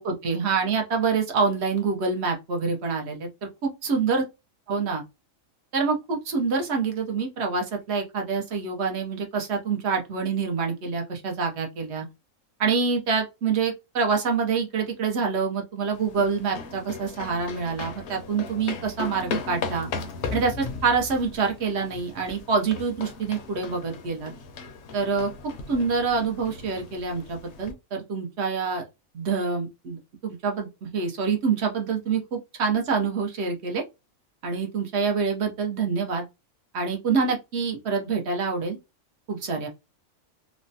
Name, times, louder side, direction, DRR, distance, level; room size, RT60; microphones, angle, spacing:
voice 1, 0.0-4.2 4.7-5.0 5.7-12.1 12.6-19.9 20.3-24.3 24.9-28.8 29.1-33.8 34.4-36.2 36.7-38.8 39.3-39.7, right 5 dB, 60° right, 0.9 m, -26 dB
sound 1, 15.9-27.7, left 4 dB, 65° left, 0.8 m, -37 dB
3.2 x 2.1 x 2.6 m
omnidirectional pair, 1.4 m